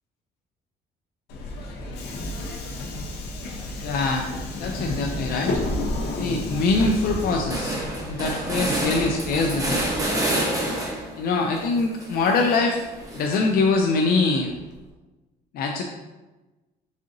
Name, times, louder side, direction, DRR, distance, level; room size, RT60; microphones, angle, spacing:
Subway metro underground, 1.3-10.0, left 2 dB, 80° left, 0.8 m, -32 dB
voice 1, 3.8-4.3 4.6-5.6 6.2-7.8 8.1-9.8 11.2-12.8 13.1-14.5 15.5-15.8, left 3 dB, 60° left, 1 dB, 0.4 m, -23 dB
sound 1, 5.5-6.0 6.4-6.5 6.8-11.2 11.5-13.7, right 1 dB, 20° right, 0.9 m, -29 dB
4.1 x 3.6 x 2.6 m, 1.1 s
cardioid pair, 110°, 17 cm